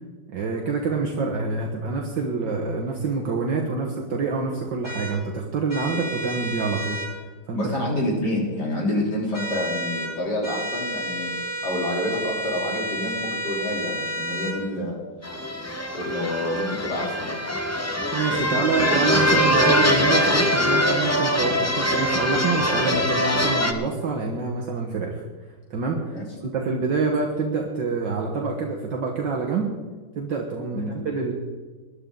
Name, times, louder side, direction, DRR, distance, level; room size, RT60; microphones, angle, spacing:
voice 1, 0.3-7.0 7.5-7.6 18.1-25.2 25.7-26.2 26.4-29.7 30.2-31.3, right 4 dB, 65° right, 0 dB, 2.0 m, -26 dB
sound 1, 4.8-5.1 5.7-7.1 9.3-10.1 10.4-14.6, right 1 dB, 10° right, 5.1 m, -31 dB
voice 2, 7.5-15.0 15.9-17.4 26.1-26.4 30.7-30.9, left 1 dB, 55° left, -2 dB, 4.0 m, -28 dB
sound 2, 15.2-23.7, equal, 20° left, 0.4 m, -22 dB
21.0 x 11.5 x 3.9 m, 1.4 s
omnidirectional pair, 2.2 m